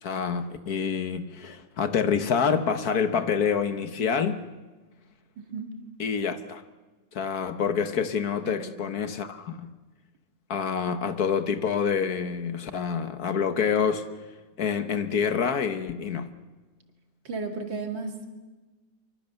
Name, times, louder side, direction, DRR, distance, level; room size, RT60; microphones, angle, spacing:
voice 1, 0.0-4.4 6.0-6.6 7.1-9.7 10.5-14.0 14.6-16.3, left 6 dB, 55° left, 1.6 m, -27 dB
voice 2, 5.4-5.8 8.5-8.7 17.2-18.3, right 4 dB, 90° right, 3.1 m, -34 dB
24.5 x 24.0 x 6.9 m
omnidirectional pair, 2.0 m